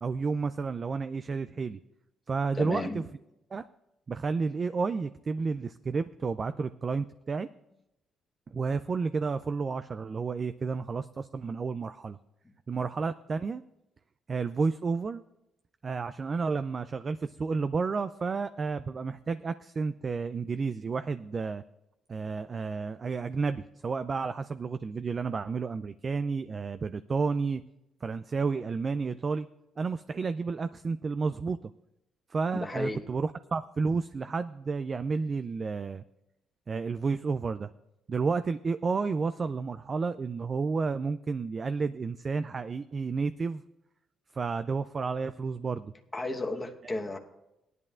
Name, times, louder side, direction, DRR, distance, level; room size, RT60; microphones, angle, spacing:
voice 1, 0.0-1.8 2.3-3.0 3.5-3.6 4.1-7.5 8.5-12.2 12.7-13.6 14.3-15.2 15.8-21.6 22.1-27.6 28.0-29.5 29.8-31.7 32.3-36.0 36.7-37.7 38.1-43.6 44.3-45.9 46.8-46.9, right 4 dB, 40° right, 11 dB, 0.3 m, -31 dB
voice 2, 2.5-3.0 32.6-33.0 46.1-47.2, left 2 dB, 20° left, 2 dB, 1.1 m, -33 dB
18.0 x 11.0 x 2.5 m, 0.89 s
cardioid pair, 90°, 0 cm